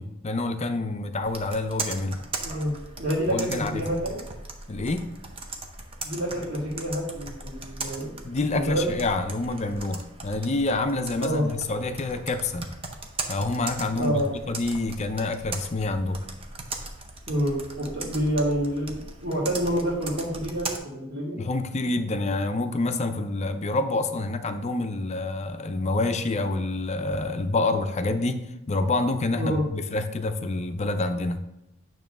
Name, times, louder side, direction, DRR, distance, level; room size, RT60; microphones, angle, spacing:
voice 1, 0.0-2.2 3.3-3.8 4.7-5.1 8.2-12.7 13.3-16.2 21.4-31.4, left 2 dB, 30° left, 8 dB, 0.5 m, -27 dB
Computer keyboard, 1.2-20.8, right 3 dB, 25° right, 0.7 m, -38 dB
voice 2, 2.4-4.2 6.0-8.1 8.5-9.0 11.2-11.5 14.0-14.3 17.3-21.4 29.4-29.6, equal, 40° right, -9 dB, 2.0 m, -28 dB
9.1 x 3.1 x 5.9 m, 0.90 s
head